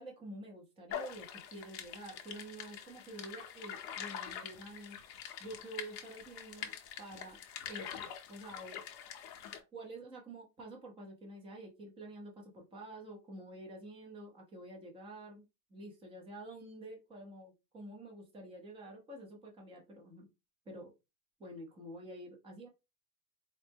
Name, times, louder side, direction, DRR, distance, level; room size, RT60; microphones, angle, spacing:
voice 1, 0.0-5.0 5.4-7.4 7.7-8.8 9.7-15.4 15.7-20.3 20.7-20.9 21.4-22.7, right 1 dB, 10° right, 0 dB, 0.6 m, -48 dB
sound 1, 0.9-9.6, left 9 dB, 40° left, 0.6 m, -45 dB
4.3 x 2.0 x 3.3 m, 0.25 s
supercardioid pair, 165°, 46 cm